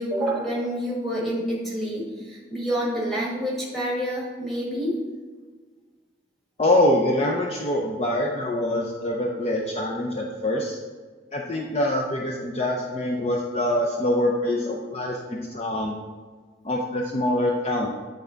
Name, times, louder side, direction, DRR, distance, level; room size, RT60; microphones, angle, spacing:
voice 1, 0.0-4.9, equal, ahead, -5 dB, 1.5 m, -28 dB
voice 2, 6.6-10.8 11.3-16.0 16.6-17.9, left 1 dB, 35° left, -1 dB, 0.5 m, -24 dB
9.4 x 3.5 x 3.8 m, 1.5 s
head